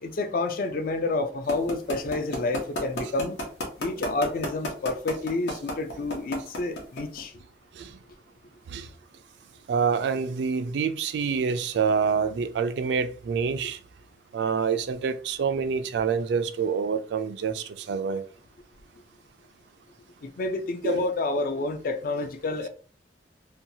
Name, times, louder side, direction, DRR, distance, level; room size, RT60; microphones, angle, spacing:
voice 1, 0.0-3.4 3.8-7.3 20.2-22.7, left 2 dB, 50° left, 0.4 m, -29 dB
sound 1, 1.5-7.2, left 1 dB, 75° left, 0.8 m, -30 dB
voice 2, 9.7-13.8 14.3-18.2 20.8-21.0, right 6 dB, 75° right, 0.3 m, -27 dB
2.7 x 2.2 x 2.7 m
head